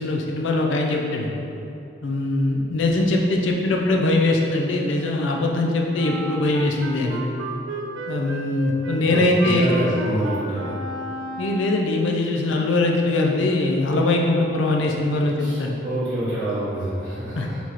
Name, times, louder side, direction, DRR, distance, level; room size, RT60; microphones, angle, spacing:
voice 1, 0.0-1.3 2.0-7.2 8.1-9.7 11.4-15.8 17.3-17.5, left 2 dB, 85° left, 0 dB, 0.5 m, -21 dB
Wind instrument woodwind instrument, 6.0-12.0, right 2 dB, 85° right, 0.4 m, -33 dB
voice 2, 9.0-10.7 15.4-15.6 15.8-17.6, right 1 dB, 20° right, -15 dB, 1.2 m, -26 dB
4.6 x 3.5 x 3.0 m, 2.8 s
head